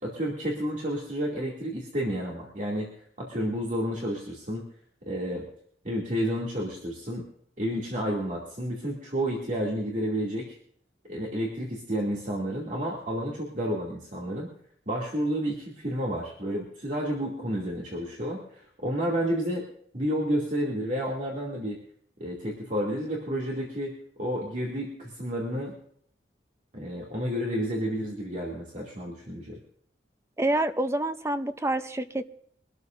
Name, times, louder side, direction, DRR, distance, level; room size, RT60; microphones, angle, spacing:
voice 1, 0.0-2.9 3.2-4.6 5.1-5.5 5.8-7.2 7.6-10.6 11.1-14.5 14.9-19.6 19.9-21.8 22.2-25.7 26.7-29.6, equal, 45° right, -2 dB, 2.6 m, -30 dB
voice 2, 30.4-32.3, right 1 dB, 15° right, 10 dB, 0.6 m, -27 dB
23.5 x 13.0 x 2.6 m, 0.65 s
head